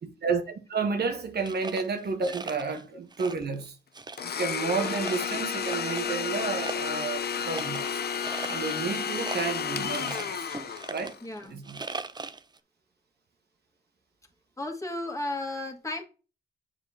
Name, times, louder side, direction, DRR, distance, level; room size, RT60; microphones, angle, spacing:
voice 1, 0.0-3.8 4.2-8.0 8.5-10.5 10.9-11.1 11.5-11.8, right 4 dB, 55° right, 1.1 m, -31 dB
sound 1, 1.4-2.8 3.1-3.6 3.9-6.2 6.5-12.6, right 3 dB, 20° right, 0.5 m, -40 dB
Domestic sounds home sounds, 4.2-11.2, left 7 dB, 55° left, 0.7 m, -32 dB
voice 2, 11.2-11.6 14.6-16.0, left 2 dB, 15° left, 1.8 m, -34 dB
7.3 x 5.0 x 2.8 m
supercardioid pair, 55°, 20 cm